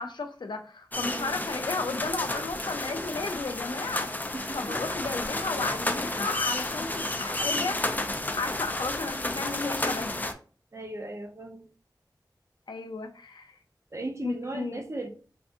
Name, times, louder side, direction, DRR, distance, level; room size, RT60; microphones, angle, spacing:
voice 1, 0.0-10.2 12.7-13.5 14.2-14.8, left 3 dB, 80° left, 0.5 m, -34 dB
sound 1, 0.9-10.3, left 2 dB, 20° left, 0.4 m, -31 dB
voice 2, 1.0-1.4 4.3-4.8 10.7-11.7 13.9-15.1, right 2 dB, 40° right, 0.5 m, -37 dB
3.4 x 2.7 x 2.5 m
wide cardioid pair, 70°, 8 cm